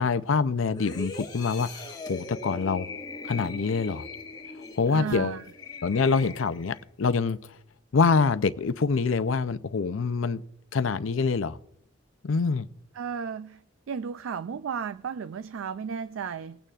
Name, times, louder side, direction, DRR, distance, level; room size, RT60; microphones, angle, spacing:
voice 1, 0.0-1.8 2.1-2.9 3.3-4.0 4.8-5.4 5.8-7.4 7.9-10.4 10.7-11.6 12.2-12.7, left 4 dB, 75° left, 0.5 m, -25 dB
sound 1, 0.7-6.9 7.3-7.5, left 3 dB, 20° left, 1.4 m, -40 dB
voice 2, 4.9-5.4 13.0-13.6 13.9-16.6, right 6 dB, 75° right, 0.4 m, -34 dB
20.0 x 9.0 x 2.4 m
head